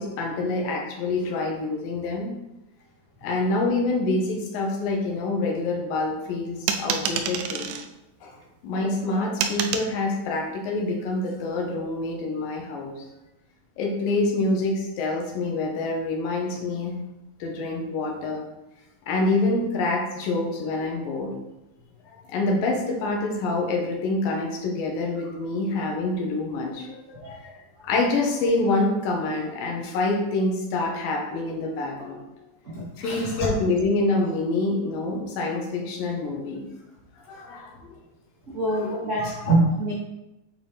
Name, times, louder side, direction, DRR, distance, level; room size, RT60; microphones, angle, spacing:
voice 1, 0.0-2.4 3.2-7.8 8.2-8.3 8.6-12.9 13.8-17.0 17.4-18.5 19.1-21.4 22.1-27.5 27.8-32.2 33.0-36.7 37.3-37.9 38.7-39.4, left 2 dB, 70° left, 0 dB, 2.8 m, -26 dB
sound 1, 6.7-7.9 9.4-9.9, right 7 dB, 85° right, 1.9 m, -27 dB
voice 2, 32.7-33.3 38.5-39.9, right 2 dB, 50° right, -9 dB, 0.8 m, -24 dB
8.4 x 4.3 x 4.0 m, 0.94 s
omnidirectional pair, 4.4 m